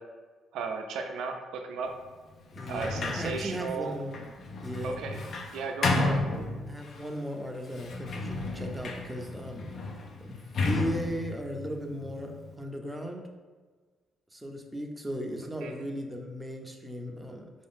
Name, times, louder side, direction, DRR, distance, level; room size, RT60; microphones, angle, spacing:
voice 1, 0.5-1.9 2.7-4.0 4.8-5.2 5.5-6.2 15.6-15.9, right 4 dB, 80° right, 4 dB, 0.5 m, -35 dB
Sliding door, 2.5-7.0 7.7-12.5, left 2 dB, 55° left, 0.5 m, -33 dB
voice 2, 2.5-4.2 4.6-5.0 5.9-6.0 6.7-9.7 10.3-13.2 14.3-17.5, equal, 10° right, 2 dB, 0.6 m, -37 dB
4.5 x 2.6 x 3.6 m, 1.4 s
cardioid pair, 90°, 0 cm